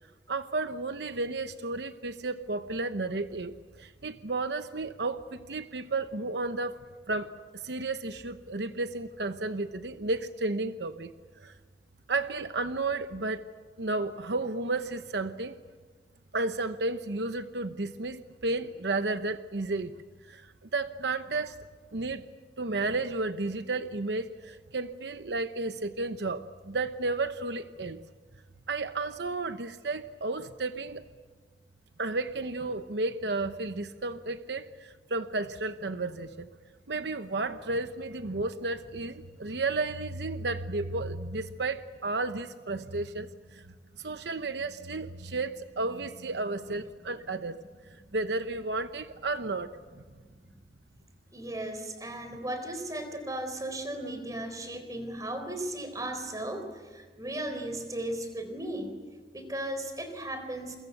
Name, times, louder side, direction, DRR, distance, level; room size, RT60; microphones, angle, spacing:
voice 1, 0.3-6.8 7.1-11.1 11.4-11.5 12.1-13.4 13.8-15.6 16.3-20.0 20.3-21.6 21.9-22.3 22.6-28.0 28.7-31.0 32.0-36.5 36.9-43.6 44.0-47.6 48.1-49.8, right 3 dB, 70° right, 9 dB, 0.9 m, -32 dB
voice 2, 51.3-59.0 59.3-60.8, right 1 dB, 20° right, 7 dB, 4.2 m, -36 dB
29.0 x 23.5 x 8.1 m, 1.4 s
head